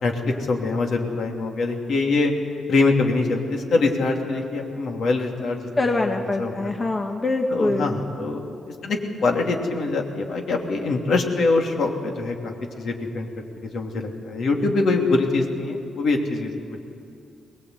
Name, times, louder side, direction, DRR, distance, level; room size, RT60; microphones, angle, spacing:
voice 1, 0.0-2.3 2.7-6.8 7.5-8.4 8.8-13.3 13.6-16.5, left 3 dB, 65° left, 2 dB, 2.8 m, -24 dB
voice 2, 5.8-7.9, left 2 dB, 25° left, 3 dB, 1.2 m, -24 dB
22.5 x 20.0 x 8.2 m, 2.5 s
cardioid pair, 125°, 0 cm